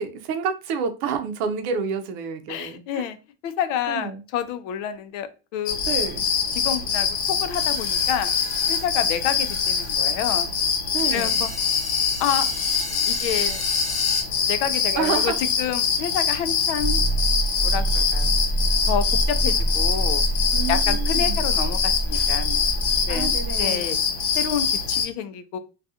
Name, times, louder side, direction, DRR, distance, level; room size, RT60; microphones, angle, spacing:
voice 1, 0.0-3.1 3.9-4.2 5.9-6.3 10.3-10.5 10.9-11.5 14.9-15.4 20.5-21.5 23.1-23.9, right 6 dB, 65° right, 0.6 m, -29 dB
voice 2, 2.5-3.2 3.4-5.8 6.5-8.3 8.7-10.5 11.1-11.5 12.2-12.4 13.1-13.6 14.4-17.0 17.6-18.3 18.9-20.2 20.7-22.6 23.1-24.0 24.4-25.6, left 9 dB, 85° left, 0.5 m, -28 dB
sound 1, 5.7-25.1, left 6 dB, 65° left, 0.9 m, -24 dB
sound 2, 7.5-10.0 10.3-10.4 11.0-14.2, left 2 dB, 20° left, 0.7 m, -36 dB
sound 3, 16.8-23.6, right 1 dB, 15° right, 0.4 m, -25 dB
2.4 x 2.3 x 2.6 m
cardioid pair, 145°, 36 cm